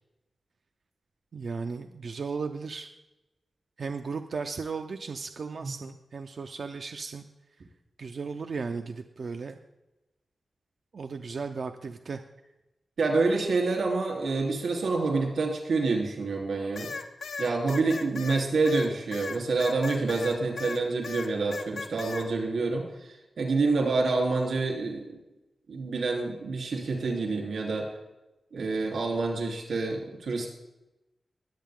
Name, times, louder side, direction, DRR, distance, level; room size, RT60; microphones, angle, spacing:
voice 1, 1.3-2.9 3.8-7.2 8.0-9.6 10.9-12.2, right 5 dB, 60° right, 6 dB, 0.6 m, -35 dB
voice 2, 13.0-16.9 17.4-25.0 25.7-27.9 28.5-30.5, right 3 dB, 85° right, 1 dB, 3.4 m, -27 dB
sound 1, 16.8-20.8 21.0-22.3, left 4 dB, 85° left, 1.2 m, -37 dB
20.5 x 8.4 x 3.7 m, 1.0 s
wide cardioid pair, 110°, 0 cm